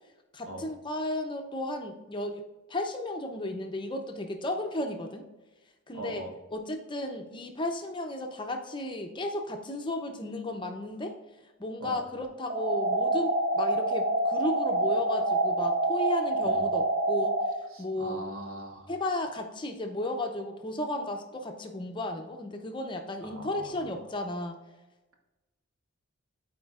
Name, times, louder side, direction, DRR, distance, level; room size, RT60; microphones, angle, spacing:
voice 1, 0.3-2.4 2.7-5.2 5.9-6.2 6.5-11.1 11.6-17.3 17.8-18.2 18.9-24.6, left 1 dB, 20° left, 4 dB, 0.6 m, -34 dB
voice 2, 5.9-6.3 11.8-12.0 16.4-16.6 17.7-18.9 23.2-23.9, right 1 dB, 75° right, 2 dB, 1.4 m, -41 dB
sound 1, 12.5-17.5, right 2 dB, 50° right, 0.8 m, -27 dB
12.5 x 4.4 x 2.4 m, 1.1 s
head